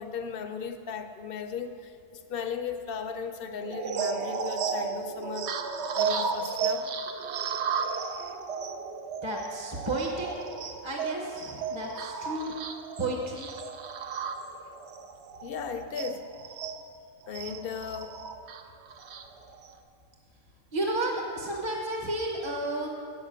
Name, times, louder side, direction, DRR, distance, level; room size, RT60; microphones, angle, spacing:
voice 1, 0.0-5.5 6.0-6.9 15.4-16.3 17.3-18.2, left 6 dB, 55° left, 8 dB, 0.7 m, -36 dB
sound 1, 3.6-16.8 17.3-19.7, right 5 dB, 65° right, 0.8 m, -34 dB
voice 2, 9.2-10.3 10.8-12.5 13.0-13.5 20.7-22.9, right 2 dB, 25° right, 0 dB, 0.8 m, -32 dB
7.7 x 6.6 x 8.0 m, 2.3 s
omnidirectional pair, 1.3 m